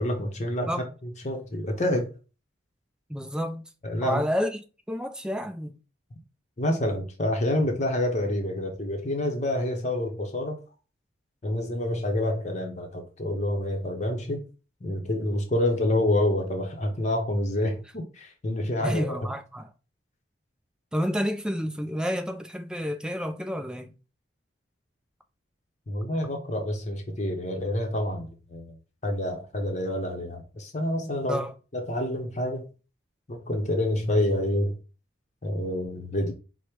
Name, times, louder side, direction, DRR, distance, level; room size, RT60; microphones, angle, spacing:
voice 1, 0.0-0.7 1.0-2.1 3.8-4.2 6.6-10.6 11.4-14.5 14.8-19.3 25.9-28.7 29.0-31.4 31.7-32.7 33.3-34.8 35.4-36.3, left 1 dB, 35° left, 0.7 m, -28 dB
voice 2, 3.1-3.7 4.0-4.6 4.9-5.8 18.8-19.7 20.9-23.9 31.3-31.5, equal, 5° right, 0.3 m, -29 dB
4.9 x 2.1 x 4.5 m
head